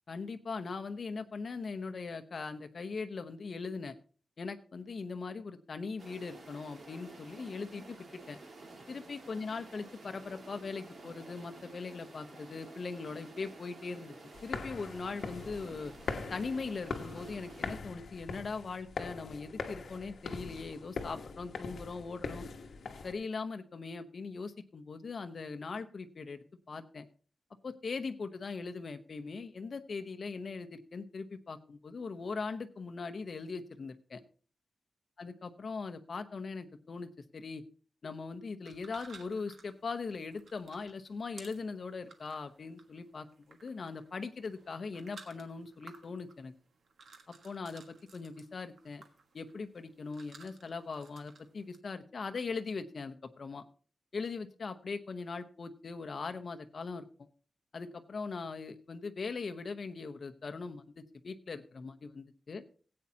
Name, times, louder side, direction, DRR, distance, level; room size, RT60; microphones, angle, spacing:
voice 1, 0.1-3.9 4.4-8.4 8.9-14.1 14.4-15.9 16.3-22.5 23.0-27.1 27.6-34.2 35.2-37.6 38.0-46.5 47.3-49.0 49.3-53.6 54.1-57.1 57.7-62.6, left 4 dB, 45° left, 9 dB, 0.8 m, -40 dB
sound 1, 6.0-17.8, right 2 dB, 55° right, 1.9 m, -52 dB
sound 2, 14.3-23.1, left 4 dB, 65° left, 1.1 m, -42 dB
sound 3, 38.6-51.8, right 4 dB, 75° right, 1.4 m, -58 dB
17.0 x 8.5 x 2.8 m, 0.40 s
wide cardioid pair, 175°, 0 cm